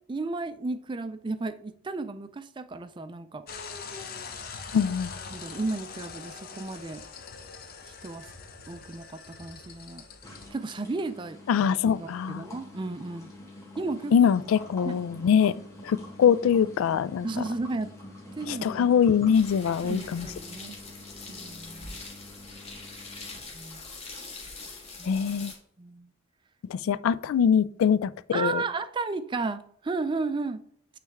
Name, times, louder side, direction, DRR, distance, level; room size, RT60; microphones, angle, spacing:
voice 1, 0.1-3.4 5.3-7.0 8.0-8.3 8.7-10.0 10.5-13.3 13.8-14.1 14.8-15.0 17.2-17.9 18.4-18.9 19.8-20.8 21.3-22.0 23.5-23.8 25.0-25.2 25.8-26.1 28.3-30.6, right 3 dB, 25° right, 0.4 m, -34 dB
sound 1, 3.5-10.5, left 5 dB, 50° left, 0.7 m, -42 dB
voice 2, 4.7-5.1 11.5-12.4 14.1-15.5 15.8-17.3 18.5-20.3 25.0-25.5 26.7-28.6, left 7 dB, 90° left, 0.3 m, -23 dB
sound 2, 10.2-24.9, left 1 dB, 15° left, 1.7 m, -47 dB
sound 3, 19.3-25.5, left 3 dB, 30° left, 1.5 m, -43 dB
9.1 x 3.4 x 3.5 m
head